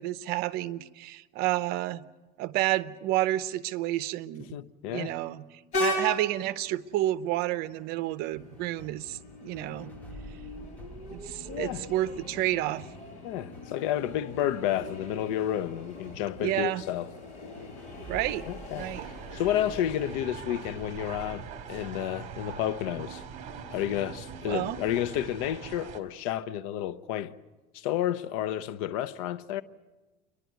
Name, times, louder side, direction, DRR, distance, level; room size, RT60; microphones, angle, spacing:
voice 1, 0.0-2.0 2.4-4.6 4.9-5.5 5.8-9.9 11.1-12.9 16.4-16.8 18.1-18.5 18.7-19.1 24.4-24.8, right 15 dB, 65° right, 0.8 m, -30 dB
voice 2, 4.5-5.1 11.5-11.8 13.2-17.1 18.5-23.2 23.7-27.3 27.7-29.6, left 11 dB, 85° left, 0.9 m, -31 dB
Train, 5.7-23.0, left 2 dB, 40° left, 6.2 m, -40 dB
sound 1, 8.3-20.9, right 1 dB, 10° left, 2.6 m, -49 dB
sound 2, 18.8-26.0, right 7 dB, 45° right, 2.2 m, -42 dB
29.5 x 11.5 x 9.4 m
cardioid pair, 130°, 18 cm